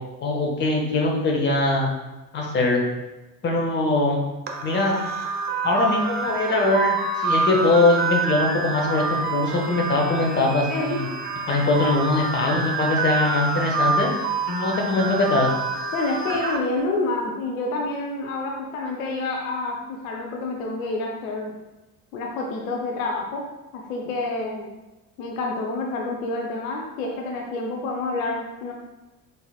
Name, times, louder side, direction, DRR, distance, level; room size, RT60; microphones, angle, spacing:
voice 1, 0.2-1.9 2.3-2.8 3.4-4.2 4.6-4.9 5.6-11.1 11.5-14.1 14.5-15.5, left 2 dB, 25° left, 0 dB, 0.8 m, -22 dB
sound 1, 4.5-16.6, right 4 dB, 25° right, 0.4 m, -27 dB
voice 2, 15.9-21.5 22.1-23.4 23.7-24.7 25.2-28.7, left 2 dB, 65° left, 0 dB, 0.7 m, -28 dB
3.9 x 3.9 x 2.3 m, 1.0 s
figure-of-eight pair, 55°, 45 cm